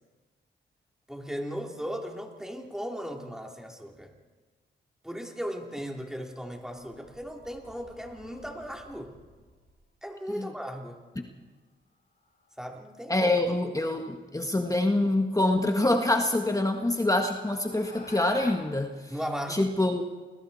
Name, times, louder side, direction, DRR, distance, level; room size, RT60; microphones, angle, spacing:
voice 1, 1.1-4.1 5.0-9.1 10.0-11.0 12.6-13.6 13.9-14.0 19.1-19.7, equal, 5° right, 1 dB, 3.3 m, -37 dB
sound 1, 6.3-9.8 12.2-12.6 14.7-14.8 15.3-15.4 15.9-18.5, left 3 dB, 50° left, 7.3 m, -51 dB
voice 2, 13.1-19.1 19.5-20.0, left 1 dB, 15° left, 3 dB, 1.7 m, -26 dB
29.0 x 21.5 x 4.3 m, 1.4 s
cardioid pair, 65°, 20 cm